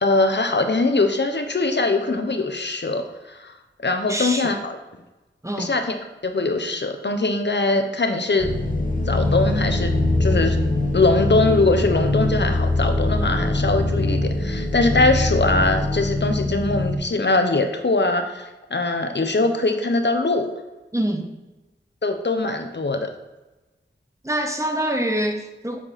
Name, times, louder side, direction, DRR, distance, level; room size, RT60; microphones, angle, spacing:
voice 1, 0.0-3.5 3.8-4.8 5.6-5.9 6.2-8.5 9.1-9.9 10.2-10.6 10.9-20.5 22.0-23.1, left 2 dB, 60° left, 6 dB, 1.0 m, -22 dB
voice 2, 4.1-4.5 5.4-5.7 20.9-21.3 24.2-25.8, right 1 dB, 15° right, 4 dB, 1.1 m, -25 dB
sound 1, 8.4-16.9, left 2 dB, 40° left, 1.7 m, -22 dB
8.3 x 7.5 x 4.2 m, 1.1 s
wide cardioid pair, 65°, 20 cm